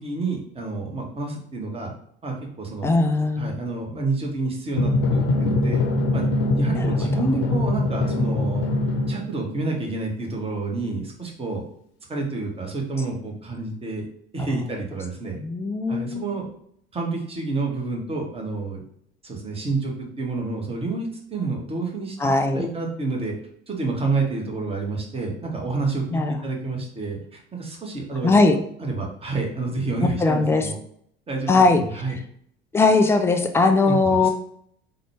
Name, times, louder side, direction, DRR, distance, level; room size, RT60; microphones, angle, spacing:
voice 1, 0.0-1.9 2.2-2.9 3.4-5.8 6.1-6.3 6.5-8.6 9.1-11.6 12.1-14.0 14.3-15.4 15.9-16.5 16.9-18.8 19.2-23.3 23.7-28.4 28.8-30.8 31.3-32.2 33.9-34.3, right 3 dB, 20° right, 0 dB, 1.0 m, -29 dB
voice 2, 2.8-3.5 6.7-6.9 14.4-14.5 15.4-16.3 22.2-22.7 26.1-26.4 28.2-28.6 30.0-30.7 31.5-31.8 32.7-34.3, left 3 dB, 10° left, 6 dB, 0.3 m, -19 dB
Drum, 4.7-9.8, left 2 dB, 50° left, 0.7 m, -23 dB
3.8 x 2.2 x 3.4 m, 0.66 s
figure-of-eight pair, 65°, 30 cm